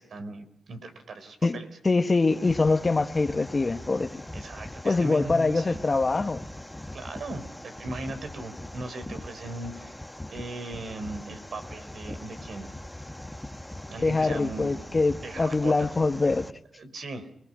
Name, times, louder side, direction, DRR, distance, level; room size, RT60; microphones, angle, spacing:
voice 1, 0.0-1.7 4.3-5.9 6.9-10.0 10.3-12.7 13.9-15.9 16.8-17.3, right 2 dB, 70° right, 4.2 m, -38 dB
voice 2, 1.8-4.2 4.8-6.4 14.0-16.4, left 3 dB, 35° left, 1.5 m, -24 dB
sound 1, 2.2-16.5, left 1 dB, 10° left, 1.4 m, -41 dB
28.5 x 20.0 x 6.3 m
cardioid pair, 75°, 0 cm